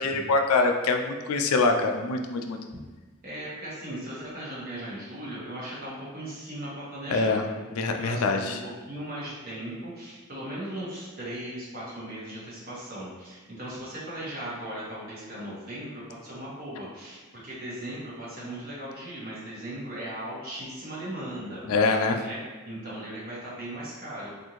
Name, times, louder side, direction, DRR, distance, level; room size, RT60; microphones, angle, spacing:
voice 1, 0.0-2.6 7.1-7.4 7.7-8.6 21.7-22.2, left 3 dB, 75° left, 4 dB, 0.4 m, -24 dB
voice 2, 3.2-7.6 8.0-8.5 8.9-22.4 22.6-24.3, right 1 dB, 40° right, -8 dB, 1.3 m, -38 dB
4.3 x 2.6 x 3.0 m, 1.3 s
head